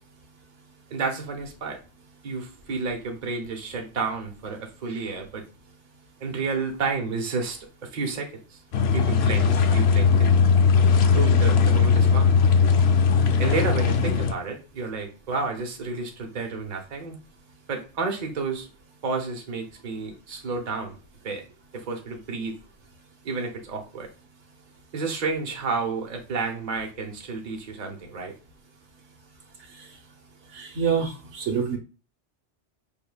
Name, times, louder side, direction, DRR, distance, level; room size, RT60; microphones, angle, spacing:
voice 1, 0.9-1.8 2.2-5.4 6.2-8.6 8.9-10.4 11.1-12.3 13.4-17.2 17.7-18.7 19.0-21.0 21.2-21.4 21.7-22.6 23.2-24.1 24.9-28.3, right 4 dB, 40° right, 2 dB, 1.0 m, -31 dB
sound 1, 8.7-14.3, left 5 dB, 70° left, 0.8 m, -19 dB
voice 2, 30.5-31.8, right 6 dB, 80° right, 2 dB, 1.3 m, -26 dB
5.6 x 3.6 x 2.3 m, 0.34 s
omnidirectional pair, 1.2 m